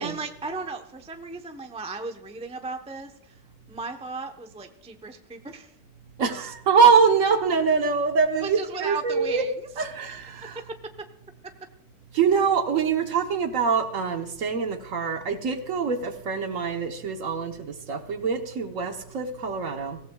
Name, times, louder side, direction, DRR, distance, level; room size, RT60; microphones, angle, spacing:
voice 1, 0.0-3.4 3.7-5.7 6.3-6.5 8.4-9.5 11.0-11.1, right 4 dB, 5° right, 6 dB, 0.5 m, -36 dB
voice 2, 6.2-9.4 9.8-10.6 12.1-20.0, right 5 dB, 55° right, 6 dB, 1.4 m, -24 dB
23.5 x 16.0 x 2.3 m, 0.72 s
omnidirectional pair, 1.8 m